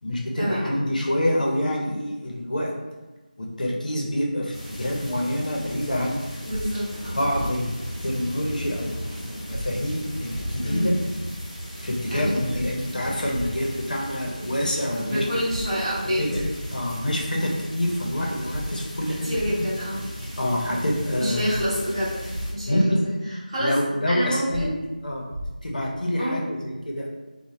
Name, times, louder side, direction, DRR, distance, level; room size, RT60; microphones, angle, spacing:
voice 1, 0.0-2.7 3.4-6.2 7.1-10.9 11.8-15.2 16.0-16.4 16.7-19.3 20.4-21.5 22.7-23.0 23.6-24.7 25.0-25.2 25.6-27.1, left 1 dB, 60° left, -1 dB, 0.6 m, -26 dB
sound 1, 4.5-22.5, equal, 30° left, 0.9 m, -37 dB
voice 2, 6.4-7.2 10.6-10.9 12.1-12.4 14.9-16.4 19.2-20.0 21.1-23.1 23.5-23.8 24.0-24.7 26.1-26.4, equal, 30° right, -10 dB, 1.0 m, -27 dB
sound 2, 6.5-6.6 7.3-7.5 9.5-9.6 10.3-10.5 12.5-12.6 13.3-13.5 15.5-15.6 16.3-16.5 18.5-18.6 19.3-19.5 21.5-21.6 22.3-22.5 24.5-24.6 25.3-25.5, right 1 dB, 55° right, 0.4 m, -33 dB
2.6 x 2.0 x 3.0 m, 1.1 s
figure-of-eight pair, 170°, 5 cm